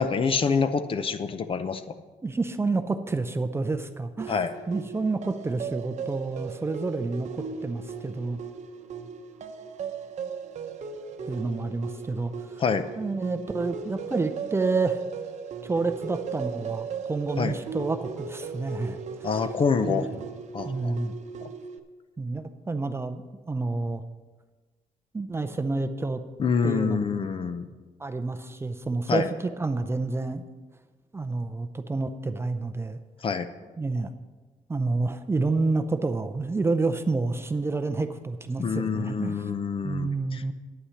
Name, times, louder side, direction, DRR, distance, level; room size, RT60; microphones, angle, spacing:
voice 1, 0.0-1.8 4.3-4.5 12.6-12.9 17.4-17.6 19.2-20.1 20.5-21.0 26.4-27.7 29.1-29.3 33.2-33.5 38.6-40.4, left 5 dB, 40° left, 10 dB, 0.6 m, -26 dB
voice 2, 2.2-4.4 4.7-8.4 11.3-12.6 13.0-15.0 15.6-19.4 19.9-20.1 20.6-21.1 22.2-24.0 25.1-26.2 26.6-27.1 28.0-30.4 31.1-33.0 33.8-34.1 34.7-39.5 39.8-40.5, right 3 dB, 20° right, 9 dB, 0.5 m, -29 dB
sound 1, 4.2-21.8, right 6 dB, 55° right, 0.8 m, -37 dB
9.7 x 8.8 x 5.7 m, 1.3 s
wide cardioid pair, 145°, 14 cm